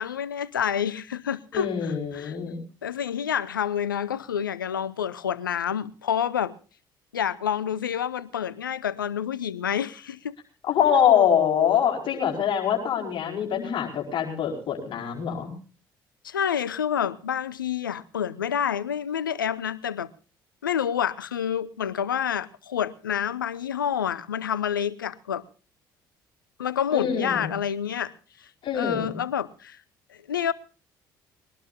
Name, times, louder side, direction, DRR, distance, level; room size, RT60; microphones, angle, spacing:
voice 1, 0.0-2.4 2.8-6.5 7.1-10.3 16.2-20.1 20.6-25.4 26.6-28.1 28.7-29.8 30.3-30.5, left 8 dB, 80° left, 0.8 m, -28 dB
voice 2, 1.5-2.6 10.7-15.5 26.9-27.5 28.6-29.1, left 8 dB, 50° left, 5.0 m, -24 dB
22.5 x 19.0 x 2.7 m
figure-of-eight pair, 50°, 11 cm